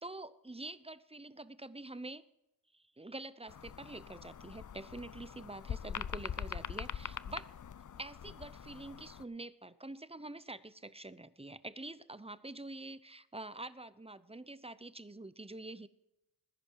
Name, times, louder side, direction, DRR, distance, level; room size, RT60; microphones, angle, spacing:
voice 1, 0.0-2.2 2.7-7.5 8.0-15.9, right 2 dB, 15° right, 15 dB, 0.7 m, -46 dB
sound 1, 3.5-9.2, left 8 dB, 50° left, 0.5 m, -43 dB
19.5 x 10.5 x 4.7 m, 0.89 s
wide cardioid pair, 75°, 41 cm